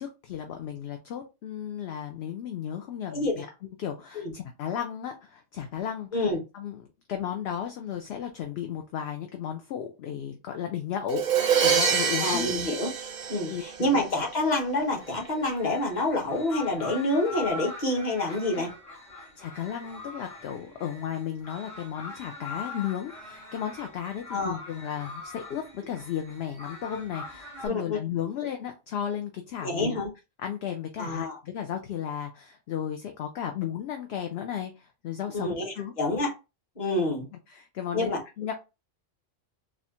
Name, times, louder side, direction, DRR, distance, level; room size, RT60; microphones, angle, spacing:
voice 1, 0.0-3.5 3.8-12.5 13.2-13.9 18.3-18.7 19.1-30.0 30.4-35.9 37.5-38.1 38.4-38.5, left 9 dB, 65° left, 5 dB, 0.7 m, -34 dB
voice 2, 3.1-3.4 4.1-4.3 6.1-6.4 12.2-12.9 13.3-18.7 24.3-24.6 27.7-28.0 29.6-30.1 31.0-31.3 35.3-36.3 36.8-37.3 37.9-38.2, left 2 dB, 40° left, 1 dB, 1.3 m, -27 dB
Crash cymbal, 11.1-14.0, right 7 dB, 50° right, 0.5 m, -25 dB
sound 1, 15.0-27.7, left 2 dB, 80° left, 2.1 m, -42 dB
4.1 x 2.5 x 2.9 m, 0.27 s
omnidirectional pair, 1.3 m